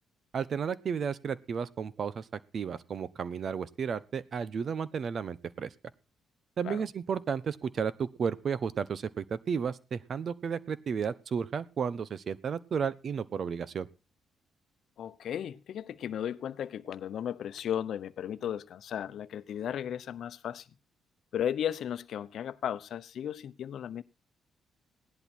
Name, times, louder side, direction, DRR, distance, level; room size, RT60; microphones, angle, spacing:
voice 1, 0.3-5.7 6.6-13.9, right 6 dB, 50° right, 1.0 m, -33 dB
voice 2, 15.0-20.7 21.3-24.0, left 9 dB, 65° left, 0.9 m, -35 dB
17.0 x 11.0 x 4.4 m
cardioid pair, 90°, 0 cm